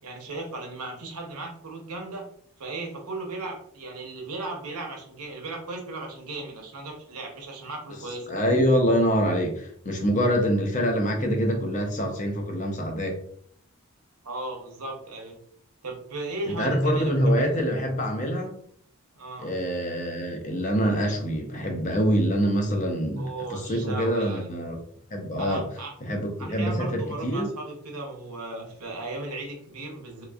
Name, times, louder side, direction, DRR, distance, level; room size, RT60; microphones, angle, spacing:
voice 1, 0.0-2.2 2.6-8.3 14.2-15.4 15.8-17.1 17.4-17.6 19.1-19.5 23.2-24.5 25.4-25.9 26.4-30.2, right 2 dB, 90° right, 1 dB, 0.9 m, -36 dB
voice 2, 8.3-13.2 16.5-18.5 19.4-24.8 25.1-25.6 26.0-27.5, equal, 35° left, 2 dB, 0.6 m, -25 dB
3.4 x 2.9 x 2.4 m, 0.63 s
head